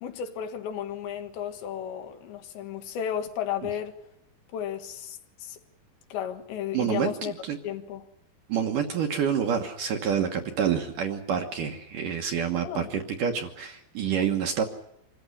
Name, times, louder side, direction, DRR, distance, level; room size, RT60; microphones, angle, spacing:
voice 1, 0.0-4.0 4.5-5.6 6.1-7.3 7.6-8.1 12.6-12.9, left 9 dB, 80° left, 3.9 m, -33 dB
voice 2, 6.7-7.6 8.5-14.6, right 7 dB, 65° right, 2.4 m, -28 dB
26.0 x 15.0 x 9.8 m
omnidirectional pair, 5.1 m